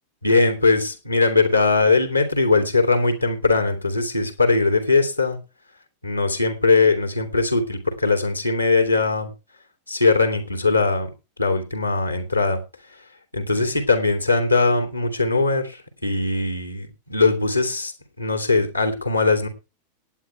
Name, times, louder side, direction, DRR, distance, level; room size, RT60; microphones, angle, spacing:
voice 1, 0.2-5.4 6.0-9.3 9.9-11.1 11.4-12.6 13.3-17.9 18.2-19.5, left 3 dB, 85° left, 7 dB, 3.0 m, -20 dB
18.0 x 9.7 x 3.3 m, 0.29 s
figure-of-eight pair, 90°, 0 cm